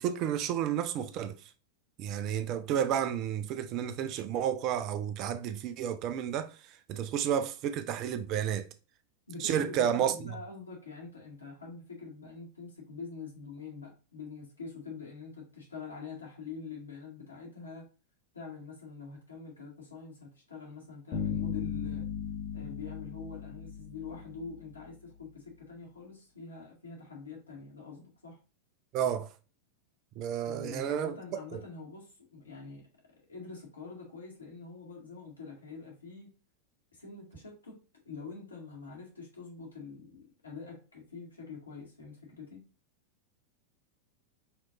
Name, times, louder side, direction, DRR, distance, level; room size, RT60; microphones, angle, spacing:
voice 1, 0.0-1.4 2.0-6.5 6.9-8.7 9.4-10.1 28.9-29.3 30.2-31.2 31.5-31.6, right 9 dB, 40° right, 0.5 m, -31 dB
voice 2, 9.3-17.9 18.3-22.1 22.5-28.4 30.4-32.9 33.1-36.3 36.9-37.8 38.0-42.7, left 4 dB, 75° left, 2.1 m, -45 dB
sound 1, 21.1-24.5, left 7 dB, 40° left, 1.5 m, -36 dB
5.8 x 3.1 x 2.6 m
figure-of-eight pair, 90°, 0 cm